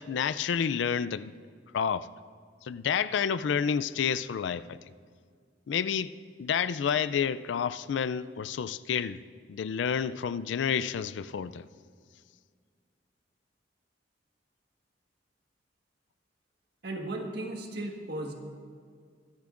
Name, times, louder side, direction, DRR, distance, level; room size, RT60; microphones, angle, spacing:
voice 1, 0.0-1.3 1.7-2.1 2.6-4.8 5.7-6.1 6.4-9.2 9.5-11.7, left 7 dB, 80° left, 0.4 m, -29 dB
voice 2, 16.8-18.3, right 1 dB, 60° right, 1.5 m, -35 dB
22.5 x 10.5 x 2.5 m
head